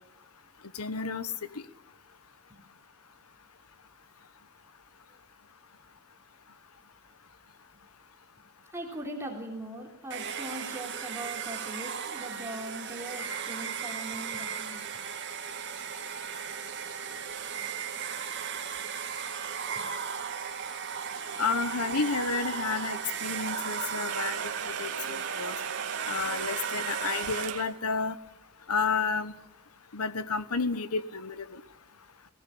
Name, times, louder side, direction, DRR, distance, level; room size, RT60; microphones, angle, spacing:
voice 1, 0.7-1.3 21.4-24.4 24.8-25.5 26.1-28.2 28.7-29.3 29.9-31.6, left 5 dB, 85° left, 13 dB, 1.2 m, -31 dB
voice 2, 8.7-14.9 19.7-19.8, right 1 dB, 10° right, 1 dB, 3.4 m, -40 dB
Domestic sounds home sounds, 10.1-27.8, right 7 dB, 55° right, 2.2 m, -36 dB
sound 1, 24.1-27.7, right 8 dB, 75° right, 0.7 m, -39 dB
20.0 x 17.5 x 8.5 m, 0.91 s
head